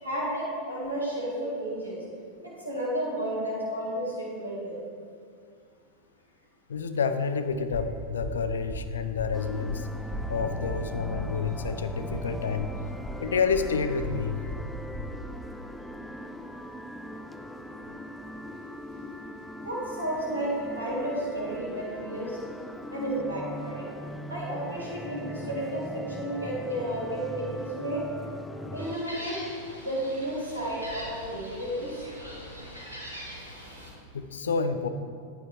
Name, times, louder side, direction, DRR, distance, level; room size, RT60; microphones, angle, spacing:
voice 1, 0.0-2.0 2.4-4.8 19.6-22.4 22.9-23.9 24.3-28.0 28.7-29.4 29.8-32.0, right 1 dB, 85° right, -5 dB, 2.1 m, -32 dB
voice 2, 6.7-9.9 10.3-12.7 13.2-14.5 34.1-34.9, left 5 dB, 70° left, 10 dB, 0.6 m, -29 dB
sound 1, 7.7-15.2, equal, 50° left, 2.0 m, -37 dB
sound 2, 9.3-29.0, equal, 5° left, 0.5 m, -40 dB
Gull seagull, 28.8-33.9, equal, 90° left, 1.8 m, -42 dB
9.3 x 8.7 x 3.5 m, 2.2 s
figure-of-eight pair, 90°, 0 cm